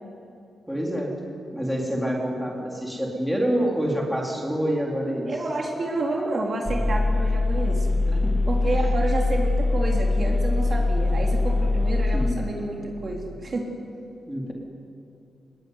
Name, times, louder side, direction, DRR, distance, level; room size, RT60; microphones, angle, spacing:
voice 1, 0.7-1.1 1.5-5.3 8.1-8.4 12.1-12.4 14.3-14.5, equal, ahead, -2 dB, 3.8 m, -27 dB
voice 2, 5.3-8.0 8.5-13.6, right 2 dB, 40° right, 0 dB, 3.6 m, -29 dB
sound 1, 6.7-12.3, left 2 dB, 15° left, 1.3 m, -22 dB
23.5 x 21.0 x 9.7 m, 2.6 s
wide cardioid pair, 145°, 0 cm